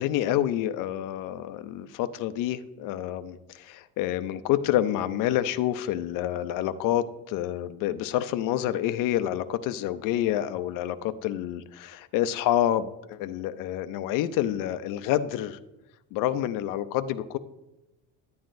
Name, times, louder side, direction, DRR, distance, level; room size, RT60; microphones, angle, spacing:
voice 1, 0.0-15.6 16.1-17.4, left 12 dB, 55° left, 12 dB, 0.5 m, -28 dB
10.5 x 9.3 x 2.6 m, 0.98 s
cardioid pair, 170°, 41 cm